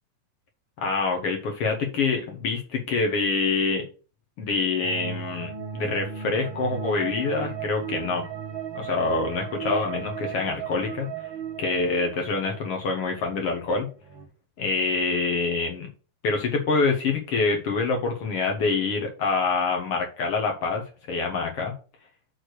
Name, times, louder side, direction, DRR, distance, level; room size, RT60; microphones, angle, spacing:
voice 1, 0.8-3.9 4.4-8.3 8.7-11.1 11.6-13.9 14.6-15.9 16.2-21.7, left 4 dB, 55° left, 2 dB, 1.8 m, -26 dB
sound 1, 4.8-13.3 13.7-13.8 14.0-14.3, right 8 dB, 65° right, 1.1 m, -36 dB
6.6 x 4.4 x 6.3 m, 0.35 s
omnidirectional pair, 4.0 m